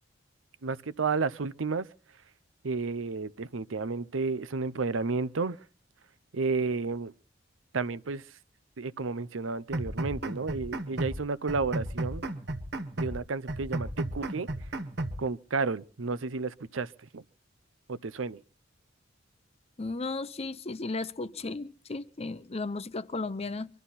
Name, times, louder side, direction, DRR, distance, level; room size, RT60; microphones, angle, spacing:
voice 1, 0.6-1.9 2.6-5.6 6.3-7.1 7.7-8.2 8.8-12.2 13.0-14.5 15.2-17.2 17.9-18.4, right 4 dB, 90° right, 0.7 m, -32 dB
sound 1, 9.7-11.2 11.5-13.2 13.5-15.2, right 1 dB, 60° right, 1.6 m, -34 dB
voice 2, 19.8-23.7, left 3 dB, 30° left, 0.7 m, -35 dB
24.5 x 13.0 x 4.2 m
head